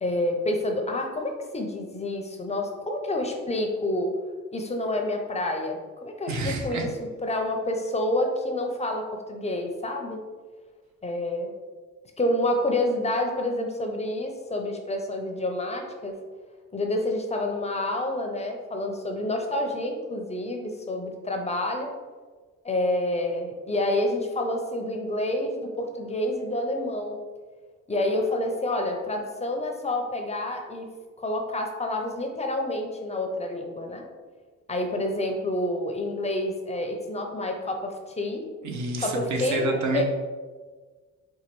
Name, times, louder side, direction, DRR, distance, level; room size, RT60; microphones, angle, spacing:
voice 1, 0.0-4.1 4.5-6.9 7.2-10.2 11.0-11.5 12.2-16.1 16.7-21.9 22.6-27.2 27.9-30.9 31.2-34.0 34.7-38.4 39.0-40.0, left 1 dB, 20° left, 3 dB, 0.5 m, -28 dB
voice 2, 6.3-6.9 38.6-40.0, right 2 dB, 70° right, 2 dB, 0.7 m, -28 dB
4.3 x 2.2 x 3.0 m, 1.4 s
cardioid pair, 90°, 30 cm